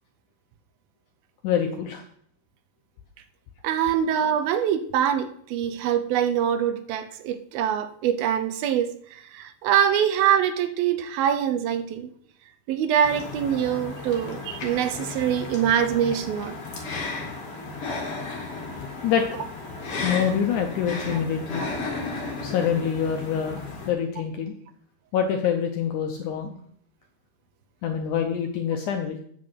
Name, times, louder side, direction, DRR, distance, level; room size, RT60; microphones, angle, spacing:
voice 1, 1.4-2.0 19.0-19.3 20.0-21.6 22.4-23.6 23.9-24.6 25.1-26.6 27.8-29.2, left 8 dB, 75° left, 4 dB, 1.8 m, -25 dB
voice 2, 3.6-12.1 12.7-16.6, right 9 dB, 80° right, 10 dB, 2.4 m, -24 dB
sound 1, 13.0-23.9, left 3 dB, 40° left, 2.6 m, -34 dB
8.7 x 6.3 x 7.7 m, 0.66 s
omnidirectional pair, 4.4 m